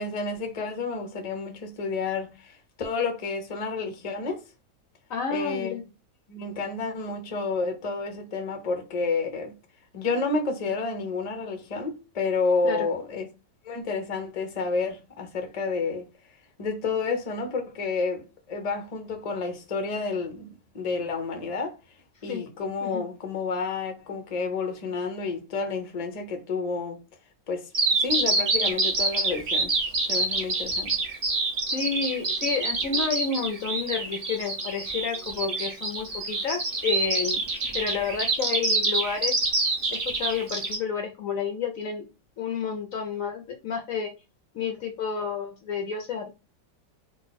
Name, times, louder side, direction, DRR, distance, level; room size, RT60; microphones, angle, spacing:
voice 1, 0.0-4.4 5.3-5.8 6.3-9.5 9.9-13.3 13.6-16.0 16.6-21.8 22.2-27.0 27.5-27.7 28.0-29.7 30.1-30.9, left 4 dB, 45° left, 0.5 m, -30 dB
voice 2, 5.1-5.8 12.6-12.9 22.3-22.4 22.8-23.0 31.7-37.4 37.7-39.3 40.1-42.1 42.4-44.1 44.5-46.3, left 6 dB, 65° left, 0.8 m, -30 dB
Bird vocalization bird call bird song, 27.7-40.8, right 3 dB, 40° right, 0.9 m, -26 dB
3.8 x 2.5 x 3.9 m
omnidirectional pair, 1.9 m